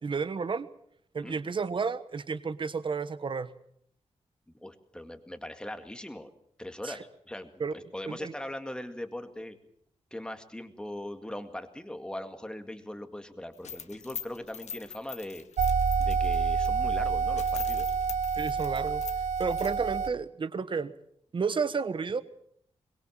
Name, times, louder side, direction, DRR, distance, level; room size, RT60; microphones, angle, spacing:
voice 1, 0.0-0.7 1.1-3.5 6.8-7.0 7.6-7.7 8.0-8.3 18.4-19.0 19.4-20.9 21.3-22.2, right 5 dB, 45° right, 14 dB, 1.3 m, -31 dB
voice 2, 4.6-6.3 6.6-9.6 10.1-15.4 16.0-17.9, left 1 dB, 5° left, 8 dB, 2.1 m, -40 dB
sound 1, 13.5-16.7 17.1-17.2 17.4-19.8, left 7 dB, 75° left, 1.4 m, -42 dB
sound 2, 15.6-20.1, right 5 dB, 90° right, 0.9 m, -28 dB
23.0 x 22.0 x 7.4 m, 0.66 s
wide cardioid pair, 155°, 12 cm